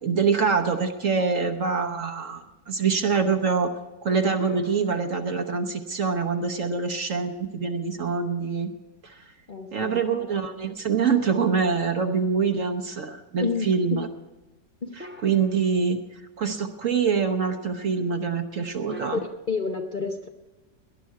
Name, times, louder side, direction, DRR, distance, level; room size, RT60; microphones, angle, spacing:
voice 1, 0.0-3.7 4.0-8.7 9.0-9.3 9.7-14.1 15.2-16.0 16.4-19.2, right 5 dB, 50° right, 6 dB, 1.2 m, -25 dB
sound 1, 4.4-5.5 9.7-11.3 15.0-16.2 18.9-19.4, equal, 10° right, 0.5 m, -46 dB
voice 2, 9.5-10.0 13.4-14.0 14.8-15.0 19.1-19.2 19.5-20.3, left 5 dB, 35° left, 2 dB, 0.8 m, -29 dB
18.5 x 11.0 x 4.7 m, 1.1 s
omnidirectional pair, 1.9 m